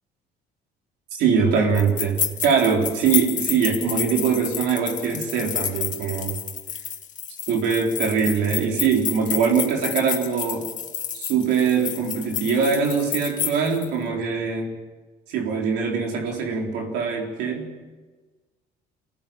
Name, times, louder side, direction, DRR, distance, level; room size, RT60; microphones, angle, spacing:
voice 1, 1.1-6.4 7.5-10.6 11.1-14.7 15.3-17.7, right 6 dB, 85° right, 1 dB, 4.0 m, -22 dB
sound 1, 1.8-13.9, left 8 dB, 50° left, 2.0 m, -30 dB
24.5 x 17.5 x 9.0 m, 1.3 s
cardioid pair, 110°, 17 cm